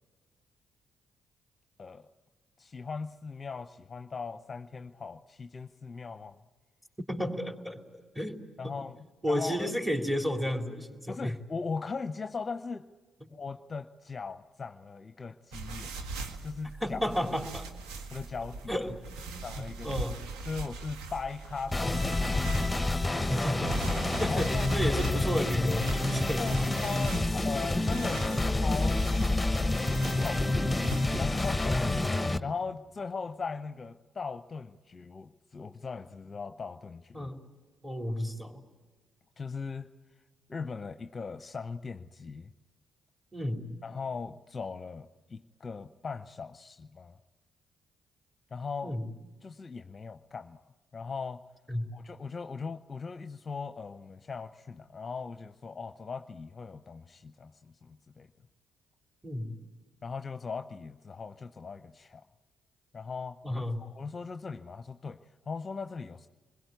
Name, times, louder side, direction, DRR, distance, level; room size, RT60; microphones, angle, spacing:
voice 1, 1.8-2.1 2.6-6.4 8.6-9.0 9.3-9.7 11.1-12.9 13.3-15.9 16.4-17.0 18.1-18.7 19.4-20.2 20.5-22.4 24.2-24.8 26.4-29.6 30.2-30.4 31.2-31.8 32.4-37.3 39.4-39.9 40.5-42.5 43.8-47.2 48.5-48.9 49.4-50.6 50.9-51.4 51.9-58.3 60.0-62.2 62.9-65.2 65.5-66.3, left 5 dB, 35° left, 9 dB, 0.8 m, -39 dB
voice 2, 7.0-7.8 8.2-8.8 9.2-11.3 16.8-17.7 18.7-18.9 19.2-20.2 23.1-23.8 24.2-26.7 30.1-30.3 31.7-31.9 37.1-37.4 37.8-38.6 43.3-43.8 48.8-49.0 51.7-51.9 59.2-59.6 63.4-63.9, equal, 10° right, 3 dB, 3.6 m, -32 dB
sound 1, 15.5-31.4, right 3 dB, 75° right, 1.5 m, -41 dB
sound 2, 21.7-32.4, left 2 dB, 15° left, 1.2 m, -28 dB
28.0 x 21.5 x 9.3 m, 1.4 s
hypercardioid pair, 45°, 0 cm